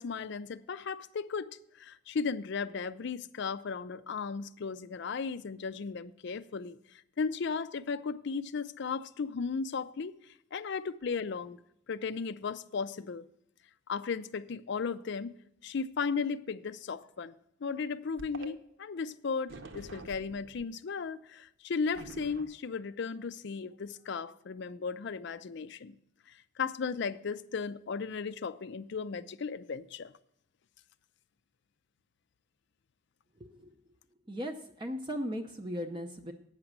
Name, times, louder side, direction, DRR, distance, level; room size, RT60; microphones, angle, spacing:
voice 1, 0.0-10.2 10.5-11.6 11.9-13.2 13.9-15.3 15.6-17.3 17.6-26.0 26.3-30.1, left 5 dB, 55° left, 0.4 m, -36 dB
sound 1, 18.2-18.5 19.5-20.6 21.9-22.4, right 3 dB, 60° right, 0.8 m, -46 dB
voice 2, 33.4-33.8 34.3-36.3, equal, 20° right, 0.6 m, -37 dB
8.9 x 5.9 x 7.3 m
head